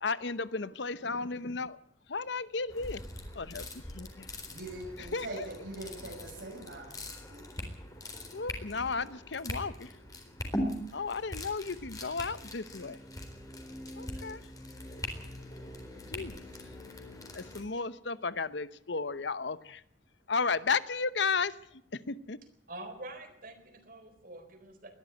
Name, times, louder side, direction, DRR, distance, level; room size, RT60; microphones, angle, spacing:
voice 1, 0.0-1.8 2.1-3.0 3.3-4.3 5.1-5.3 8.3-9.9 10.9-13.0 14.0-14.4 16.1-16.4 17.3-19.8 20.3-22.4, left 4 dB, 70° left, 15 dB, 0.9 m, -34 dB
sound 1, 2.7-17.6, left 1 dB, 20° left, 4.0 m, -42 dB
voice 2, 4.5-7.4, right 2 dB, 85° right, -3 dB, 6.9 m, -42 dB
voice 3, 22.7-24.9, right 2 dB, 50° right, 8 dB, 4.1 m, -46 dB
21.0 x 13.0 x 9.4 m, 0.73 s
head